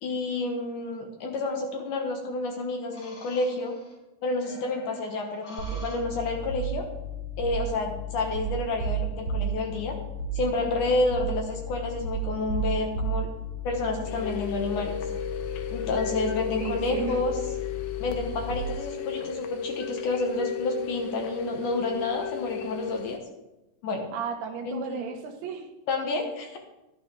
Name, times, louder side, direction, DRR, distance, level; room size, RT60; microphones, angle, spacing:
voice 1, 0.0-3.8 4.2-6.9 7.4-9.9 10.3-13.3 13.6-15.0 15.7-17.3 18.0-23.2 23.8-24.1 24.7-25.0 25.9-26.6, left 2 dB, 65° left, 2 dB, 2.3 m, -29 dB
sound 1, 1.4-1.9 2.9-3.9 4.4-6.5, left 1 dB, 45° left, 3.9 m, -47 dB
sound 2, 5.6-18.5, right 2 dB, 65° right, 1.8 m, -34 dB
sound 3, 14.0-23.2, left 7 dB, 85° left, 1.7 m, -34 dB
voice 2, 16.6-17.2 24.1-25.7, right 6 dB, 85° right, 4 dB, 3.2 m, -34 dB
12.0 x 12.0 x 3.4 m, 0.96 s
omnidirectional pair, 4.5 m